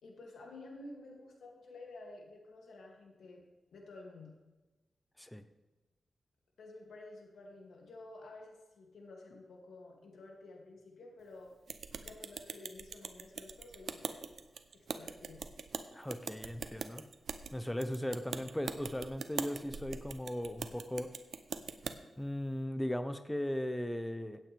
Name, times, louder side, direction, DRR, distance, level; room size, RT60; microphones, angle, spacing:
voice 1, 0.0-3.4 3.7-4.4 6.6-11.5 12.0-14.3 14.7-15.4, left 2 dB, 90° left, -1 dB, 2.6 m, -52 dB
sound 1, 11.7-22.0, right 5 dB, 75° right, 0.8 m, -42 dB
voice 2, 15.9-17.0 17.5-21.1 22.2-24.4, equal, 5° left, 10 dB, 0.8 m, -37 dB
16.5 x 9.0 x 3.5 m, 1.2 s
wide cardioid pair, 90°, 0 cm